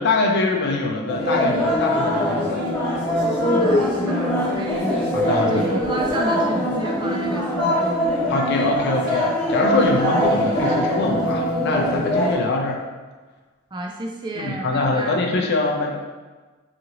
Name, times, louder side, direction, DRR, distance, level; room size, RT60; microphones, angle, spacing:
voice 1, 0.0-2.6 5.1-5.6 8.3-12.8 14.4-16.0, left 3 dB, 55° left, 1 dB, 0.4 m, -23 dB
sound 1, 1.1-12.4, equal, 10° left, 1.1 m, -22 dB
voice 2, 3.5-5.1 5.5-8.3 13.7-15.2, right 1 dB, 20° right, 0 dB, 0.3 m, -30 dB
2.8 x 2.5 x 2.8 m, 1.3 s
head